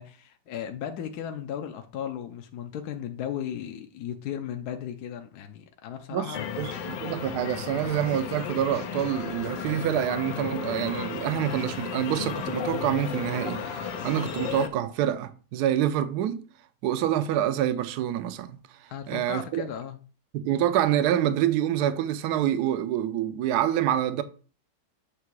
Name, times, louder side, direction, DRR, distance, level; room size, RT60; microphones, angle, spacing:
voice 1, 0.0-6.5 18.9-20.0, left 9 dB, 70° left, 1.1 m, -36 dB
voice 2, 6.1-16.4 16.8-18.6 19.1-19.7 20.3-24.2, right 11 dB, 70° right, 1.1 m, -27 dB
sound 1, 6.3-14.7, left 7 dB, 85° left, 1.4 m, -34 dB
8.3 x 2.8 x 4.6 m
omnidirectional pair, 1.9 m